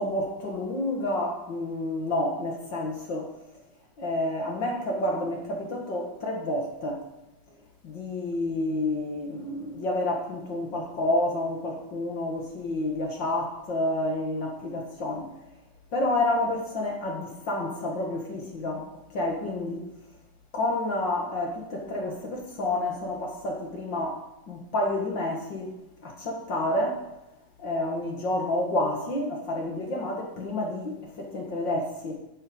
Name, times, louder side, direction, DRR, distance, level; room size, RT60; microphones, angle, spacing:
voice 1, 0.0-3.3 4.0-7.0 7.8-15.3 15.9-18.9 19.1-19.8 20.5-24.2 24.5-25.7 26.0-27.0 27.6-32.2, left 1 dB, 45° left, 1 dB, 1.9 m, -29 dB
9.8 x 6.6 x 7.9 m, 0.94 s
omnidirectional pair, 3.5 m